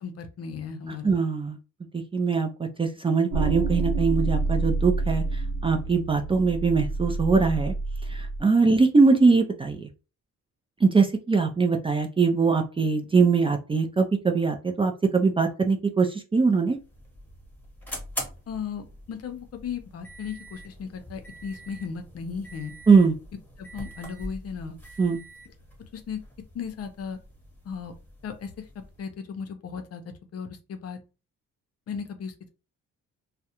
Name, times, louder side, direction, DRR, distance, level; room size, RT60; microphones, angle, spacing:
voice 1, 0.0-1.1 18.5-22.7 23.6-24.8 25.9-26.2 26.5-27.2 27.6-27.9 28.2-30.0 30.3-31.0 31.9-32.5, left 6 dB, 55° left, 7 dB, 0.6 m, -36 dB
voice 2, 1.0-1.6 1.9-5.2 5.6-7.7 8.1-9.9 10.8-16.8 22.9-23.1 25.0-25.2, right 4 dB, 20° right, 3 dB, 0.4 m, -22 dB
sound 1, 3.3-8.4, right 3 dB, 75° right, 0.7 m, -28 dB
sound 2, 16.7-29.1, equal, 5° left, 1.0 m, -43 dB
2.3 x 2.1 x 2.8 m, 0.31 s
cardioid pair, 90°, 30 cm